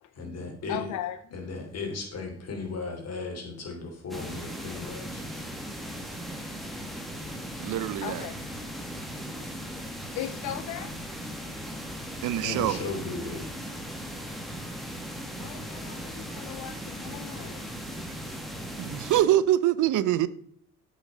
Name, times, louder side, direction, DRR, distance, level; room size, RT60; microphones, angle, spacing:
voice 1, 0.2-0.8 1.3-5.2 9.4-9.5 12.4-13.5, left 3 dB, 55° left, 3.4 m, -36 dB
voice 2, 0.7-1.2 8.0-8.3 10.1-11.0 15.4-17.7, left 13 dB, 80° left, 0.6 m, -37 dB
sound 1, 4.1-19.2, equal, ahead, 1.8 m, -38 dB
voice 3, 7.6-8.3 12.2-12.8 18.8-20.3, right 13 dB, 80° right, 0.6 m, -24 dB
8.2 x 6.3 x 5.3 m
cardioid pair, 90°, 30 cm